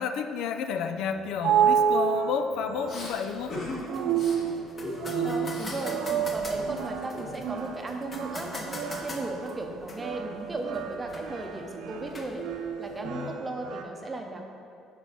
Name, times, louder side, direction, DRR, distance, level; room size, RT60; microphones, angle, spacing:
voice 1, 0.0-3.6 5.1-5.6 13.0-13.4, left 6 dB, 65° left, 8 dB, 0.5 m, -31 dB
sound 1, 1.0-13.8, right 8 dB, 70° right, 0.7 m, -30 dB
Respiratory sounds, 2.9-3.1 3.5-3.8 4.1-4.4 4.8-5.9 6.2-7.6, left 2 dB, 45° left, 2.0 m, -39 dB
sound 2, 3.0-13.1, left 2 dB, 25° left, 0.9 m, -43 dB
voice 2, 3.9-4.2 5.2-12.4 12.8-14.5, right 2 dB, 15° right, 3 dB, 0.8 m, -36 dB
9.4 x 4.7 x 5.7 m, 2.6 s
cardioid pair, 155°, 0 cm